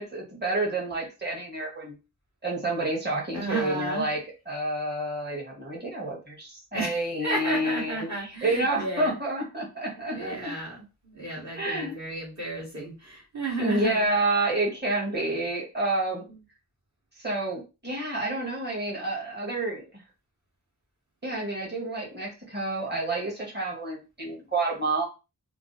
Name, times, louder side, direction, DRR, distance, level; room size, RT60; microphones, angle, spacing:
voice 1, 0.0-2.0 2.4-4.2 4.4-10.5 11.5-12.0 13.6-16.2 17.2-19.8 21.2-25.0, right 2 dB, 25° right, -3 dB, 1.5 m, -29 dB
voice 2, 3.3-4.1 6.7-6.9 7.2-9.2 10.1-14.1, right 2 dB, 45° right, -5 dB, 1.4 m, -33 dB
3.3 x 2.0 x 3.9 m, 0.29 s
wide cardioid pair, 65°, 39 cm